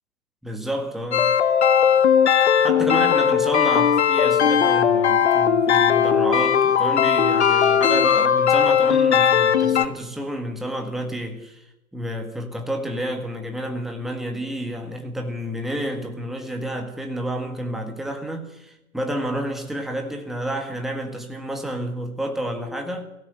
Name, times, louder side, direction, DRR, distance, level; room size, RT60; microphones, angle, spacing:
voice 1, 0.4-1.3 2.6-11.6 11.9-23.1, equal, ahead, 1.8 m, -29 dB
sound 1, 1.1-9.9, left 8 dB, 50° left, 1.3 m, -18 dB
23.5 x 17.0 x 8.0 m
figure-of-eight pair, 130°, 43 cm